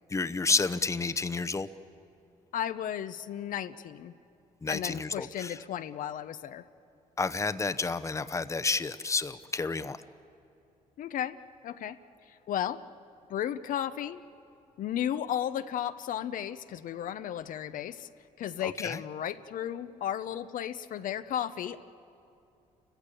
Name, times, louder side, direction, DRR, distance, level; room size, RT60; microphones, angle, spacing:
voice 1, 0.1-1.7 4.6-5.5 7.2-10.0 18.6-19.0, left 4 dB, 20° left, 13 dB, 0.8 m, -30 dB
voice 2, 2.5-4.1 4.7-6.6 11.0-11.4 11.6-12.0 12.3-12.8 13.3-14.2 14.8-18.1 18.4-21.8, left 10 dB, 70° left, 11 dB, 0.7 m, -34 dB
30.0 x 15.0 x 8.4 m, 2.7 s
cardioid pair, 80°, 14 cm